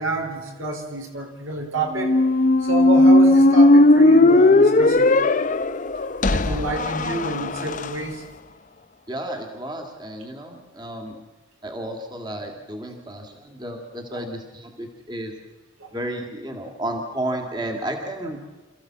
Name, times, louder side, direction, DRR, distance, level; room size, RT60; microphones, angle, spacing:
voice 1, 0.0-2.2 2.6-5.2 6.0-8.2 14.1-14.3 15.8-15.9, right 2 dB, 75° right, 3 dB, 3.9 m, -29 dB
Squeak, 1.9-7.9, left 2 dB, 40° left, 0.6 m, -16 dB
voice 2, 9.1-11.2 11.6-15.3 15.9-18.4, right 1 dB, 20° right, 2 dB, 2.2 m, -32 dB
28.0 x 14.5 x 7.4 m, 1.3 s
head